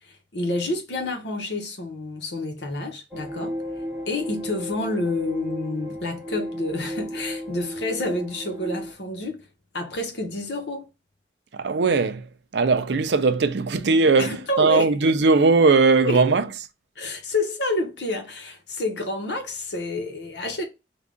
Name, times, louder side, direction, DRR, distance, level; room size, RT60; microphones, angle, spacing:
voice 1, 0.0-3.6 4.1-9.5 9.7-10.9 14.2-15.0 16.0-16.3 17.0-20.6, left 2 dB, 80° left, 1.1 m, -29 dB
sound 1, 3.1-8.9, equal, 5° right, 0.6 m, -33 dB
voice 2, 11.5-16.5, right 4 dB, 75° right, 0.5 m, -19 dB
3.6 x 2.3 x 3.7 m
head